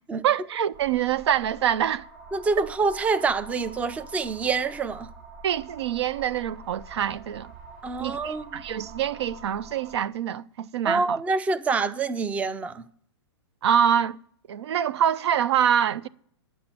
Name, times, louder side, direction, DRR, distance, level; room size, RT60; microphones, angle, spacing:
voice 1, 0.2-2.0 5.4-7.5 8.0-11.2 13.6-14.2 14.5-16.1, right 9 dB, 65° right, 0.5 m, -25 dB
sound 1, 0.7-10.0, right 3 dB, 45° right, 3.7 m, -45 dB
voice 2, 2.3-5.1 7.8-8.6 10.9-12.9, right 4 dB, 10° right, 0.4 m, -26 dB
10.0 x 6.1 x 7.5 m
hypercardioid pair, 125°, 15 cm